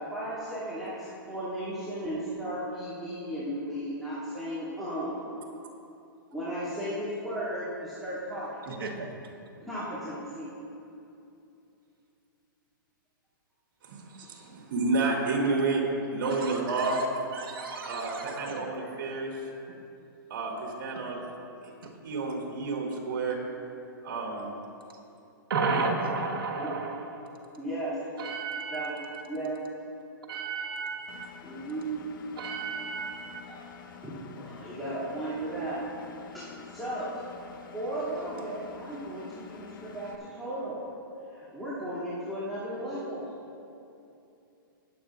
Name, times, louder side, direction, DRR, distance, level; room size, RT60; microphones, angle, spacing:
voice 1, 0.0-5.2 6.3-8.5 9.6-10.5 15.4-15.6 18.8-18.9 26.6-26.8 27.6-28.0 28.7-29.6 31.4-32.0 33.5-33.6 34.0-35.8 36.3-37.1 37.7-40.8 41.3-43.3, right 1 dB, ahead, -15 dB, 2.7 m, -35 dB
voice 2, 8.7-9.1 16.2-17.1 17.3-18.6 21.8-21.9 25.5-27.0 28.2-29.2 30.3-31.3 32.4-33.4, right 4 dB, 90° right, 0 dB, 1.7 m, -33 dB
voice 3, 13.8-15.8 16.1-17.0 17.8-19.4 20.3-21.2 21.6-21.7 22.0-23.4 24.0-24.5 25.7-25.9, right 3 dB, 65° right, -2 dB, 2.8 m, -30 dB
Engine, 31.1-40.2, left 6 dB, 65° left, 1.0 m, -48 dB
20.0 x 8.6 x 2.5 m, 2.7 s
hypercardioid pair, 145°, 12 cm